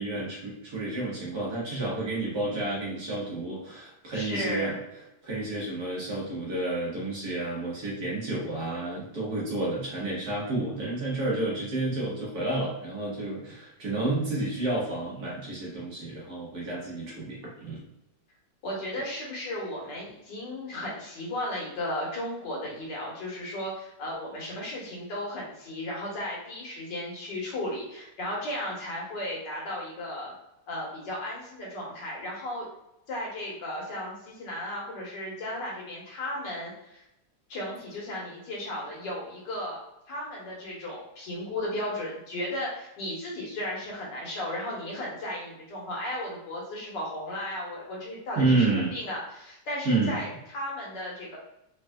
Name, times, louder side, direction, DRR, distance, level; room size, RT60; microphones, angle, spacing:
voice 1, 0.0-4.7 5.2-17.8 48.4-48.9 49.9-50.2, right 2 dB, 60° right, -5 dB, 1.8 m, -30 dB
voice 2, 4.1-4.8 18.6-30.3 30.7-32.7 33.1-37.0 37.5-48.7 48.9-51.4, left 1 dB, 70° left, -3 dB, 1.9 m, -35 dB
4.2 x 3.6 x 2.3 m, 0.85 s
omnidirectional pair, 2.0 m